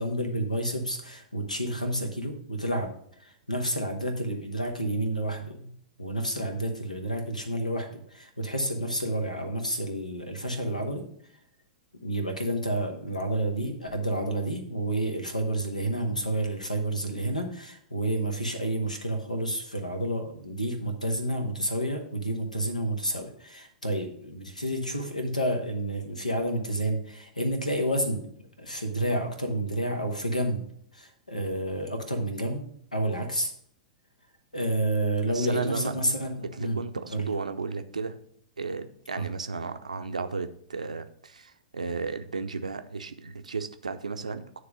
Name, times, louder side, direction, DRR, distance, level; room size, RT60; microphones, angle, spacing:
voice 1, 0.0-2.9 3.2-5.7 6.0-11.0 12.0-28.3 28.6-30.6 30.9-32.6 32.9-33.5 34.5-36.8 37.1-37.3 39.2-39.3, right 1 dB, 85° left, 5 dB, 1.2 m, -30 dB
voice 2, 35.3-35.9 36.6-38.2 38.6-44.6, right 4 dB, 75° right, 9 dB, 0.6 m, -34 dB
9.6 x 3.3 x 5.3 m, 0.65 s
figure-of-eight pair, 100°, 4 cm